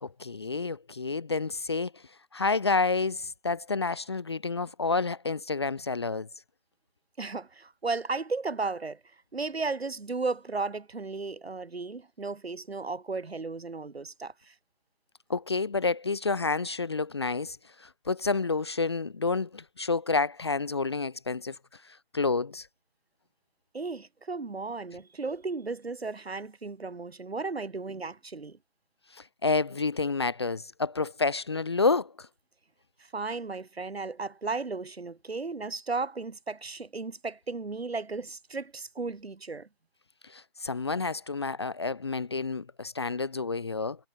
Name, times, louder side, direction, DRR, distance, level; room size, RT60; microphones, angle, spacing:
voice 1, 0.0-1.9 2.3-6.3 15.3-21.6 22.1-22.7 29.2-32.3 40.3-44.0, left 4 dB, 25° left, 0.5 m, -29 dB
voice 2, 7.2-9.0 9.3-14.5 23.7-28.6 33.1-39.7, right 3 dB, 85° right, 3.0 m, -35 dB
figure-of-eight pair, 160°, 30 cm